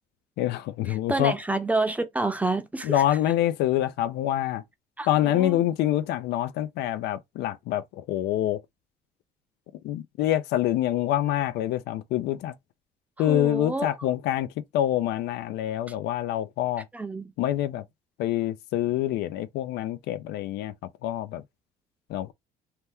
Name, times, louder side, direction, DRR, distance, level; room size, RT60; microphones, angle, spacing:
voice 1, 0.4-1.3 2.8-4.6 5.1-8.6 9.8-12.5 13.2-14.5 14.7-16.9 17.4-17.8 18.2-20.7 21.0-21.4 22.1-22.3, left 12 dB, 80° left, 0.4 m, -26 dB
voice 2, 0.9-2.9 5.0-5.6 13.3-13.9 16.9-17.3, right 2 dB, 10° right, 0.6 m, -28 dB
2.9 x 2.2 x 3.4 m
cardioid pair, 110°, 17 cm